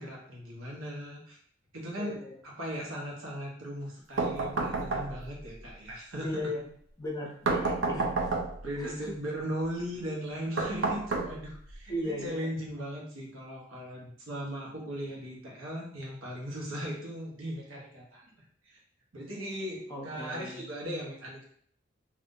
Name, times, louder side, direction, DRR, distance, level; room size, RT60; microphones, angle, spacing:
voice 1, 0.0-1.4 1.7-6.5 8.6-18.2 18.6-18.8 19.1-21.4, equal, 85° right, -2 dB, 1.0 m, -38 dB
voice 2, 2.0-2.3 6.2-6.6 7.0-8.4 8.8-9.2 11.9-12.5 19.9-20.6, left 1 dB, 15° left, -1 dB, 0.5 m, -37 dB
sound 1, 4.2-5.4 7.5-8.7 10.6-11.7, right 3 dB, 70° right, 0.5 m, -30 dB
2.6 x 2.5 x 3.7 m, 0.62 s
head